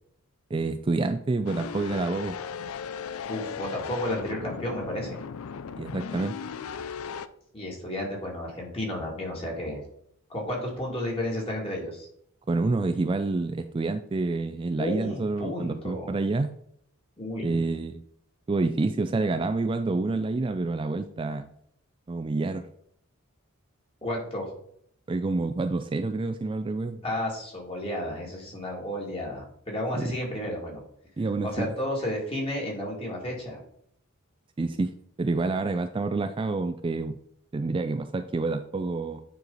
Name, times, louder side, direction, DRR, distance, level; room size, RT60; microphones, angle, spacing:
voice 1, 0.5-2.4 5.8-6.3 12.5-16.5 17.4-18.0 18.5-21.5 22.1-22.7 25.1-27.0 29.9-30.1 31.2-31.7 34.6-37.2 37.5-39.2, right 3 dB, 25° right, 8 dB, 0.3 m, -28 dB
sound 1, 1.5-7.3, left 6 dB, 80° left, 0.5 m, -37 dB
voice 2, 3.3-5.2 7.5-9.8 10.3-12.1 14.8-16.1 17.2-17.6 24.0-24.5 27.0-30.8 31.4-33.6, left 1 dB, 25° left, -2 dB, 2.5 m, -32 dB
9.5 x 4.6 x 4.0 m, 0.69 s
head